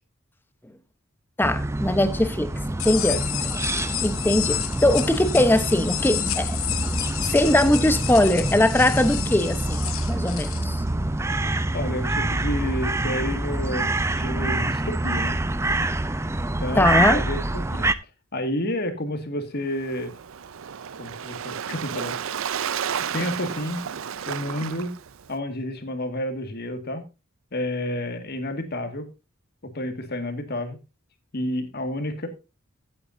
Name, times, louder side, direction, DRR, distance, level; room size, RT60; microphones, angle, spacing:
voice 1, 1.4-3.2 3.7-6.6 7.3-10.8 16.8-17.2, left 1 dB, 10° left, 0.9 m, -21 dB
sound 1, 1.4-17.9, right 2 dB, 15° right, 0.5 m, -26 dB
sound 2, 2.8-10.6, left 13 dB, 70° left, 1.0 m, -31 dB
voice 2, 11.7-15.4 16.6-17.9 18.3-20.1 21.0-22.2 23.1-23.8 24.3-24.9 25.3-27.0 27.5-29.1 29.6-30.8 31.3-32.3, left 1 dB, 50° left, 2.0 m, -30 dB
Waves surf, 19.7-25.4, right 8 dB, 70° right, 0.5 m, -32 dB
15.5 x 8.7 x 2.7 m
head